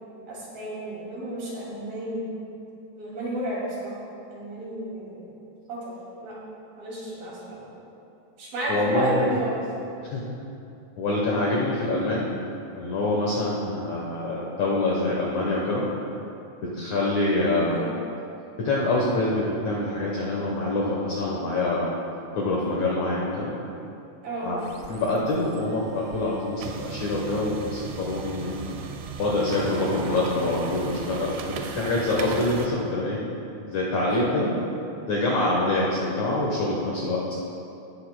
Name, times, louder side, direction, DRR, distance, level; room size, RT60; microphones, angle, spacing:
voice 1, 0.3-2.3 3.0-4.0 4.3-5.3 5.7-5.9 6.2-6.3 6.8-7.7 8.4-9.6 17.6-17.9 24.2-24.5 34.1-34.5, right 1 dB, 60° right, -6 dB, 4.1 m, -32 dB
voice 2, 8.7-9.4 10.1-10.3 11.0-12.3 12.8-15.8 16.6-17.9 18.6-21.9 22.4-23.5 24.4-24.6 24.9-28.6 29.2-33.2 33.7-34.5 35.1-37.2, left 2 dB, 70° left, -4 dB, 1.8 m, -25 dB
sound 1, 24.5-32.7, right 5 dB, 80° right, 2.3 m, -37 dB
16.5 x 10.5 x 2.2 m, 2.7 s
omnidirectional pair, 4.8 m